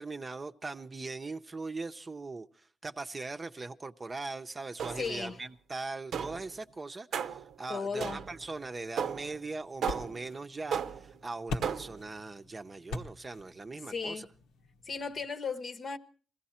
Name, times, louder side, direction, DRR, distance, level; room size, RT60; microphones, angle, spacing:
voice 1, 0.0-14.3, right 3 dB, 25° right, 0.7 m, -40 dB
sound 1, 4.8-5.3 6.1-6.5 7.1-7.5 8.0-8.5 9.0-9.4 9.8-10.3 10.7-11.2 11.6-12.1, right 7 dB, 65° right, 0.7 m, -35 dB
voice 2, 5.0-5.4 7.7-8.3 13.9-14.3 14.8-16.0, left 5 dB, 45° left, 1.0 m, -36 dB
sound 2, 8.2-15.3, left 3 dB, 85° left, 1.2 m, -45 dB
21.0 x 15.5 x 4.3 m
cardioid pair, 90°, 0 cm